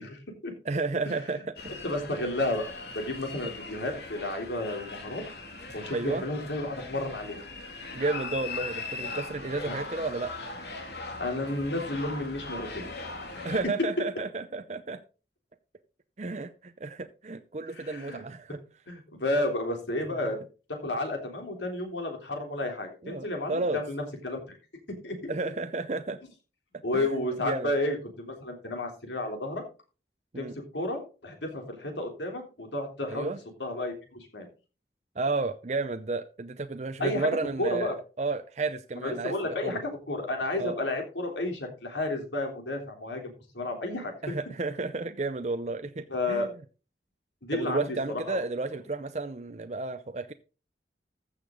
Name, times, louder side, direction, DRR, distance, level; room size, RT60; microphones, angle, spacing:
voice 1, 0.0-0.5 1.8-5.2 5.7-7.5 9.7-9.8 11.2-12.8 13.2-13.5 17.7-18.2 18.9-20.4 20.7-24.4 25.0-25.3 26.8-29.6 30.4-33.3 33.6-34.5 37.0-37.3 37.6-38.0 39.0-44.3 46.1-46.5 47.5-48.4, left 2 dB, 90° left, 2 dB, 3.5 m, -32 dB
voice 2, 0.6-1.4 3.4-3.5 5.9-6.2 7.9-10.3 13.4-15.0 16.2-18.6 23.0-23.8 25.3-26.2 26.9-27.1 27.4-27.7 30.3-30.5 33.1-33.4 35.2-37.9 38.2-39.8 40.6-40.8 44.2-46.5 47.5-50.3, right 3 dB, 40° right, 8 dB, 0.6 m, -32 dB
sound 1, 1.6-13.6, left 3 dB, 70° left, 2.5 m, -40 dB
14.5 x 6.7 x 3.8 m, 0.34 s
head